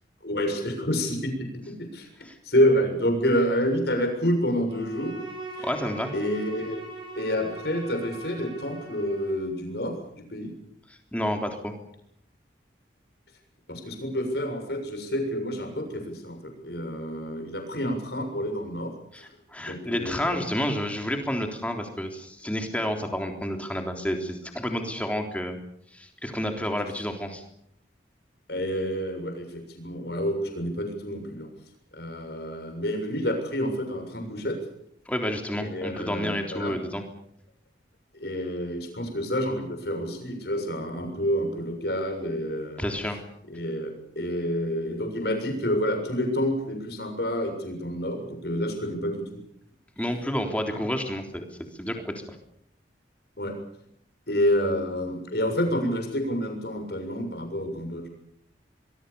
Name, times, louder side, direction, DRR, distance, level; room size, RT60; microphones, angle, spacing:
voice 1, 0.2-2.1 2.4-5.2 5.5-5.7 6.1-6.8 7.2-10.6 13.7-18.9 19.6-20.4 28.5-31.5 31.9-34.6 35.6-36.8 38.1-42.9 43.5-49.4 50.7-50.8 53.4-53.6 54.3-58.0, equal, 60° left, 4 dB, 7.1 m, -28 dB
Bowed string instrument, 4.7-9.5, right 3 dB, 25° right, 7.5 m, -41 dB
voice 2, 5.6-6.1 10.9-11.7 19.1-25.6 25.9-27.4 35.1-37.0 42.8-43.2 50.0-51.4 51.8-52.2, equal, 5° left, 4 dB, 3.6 m, -30 dB
25.0 x 22.5 x 7.0 m, 0.71 s
head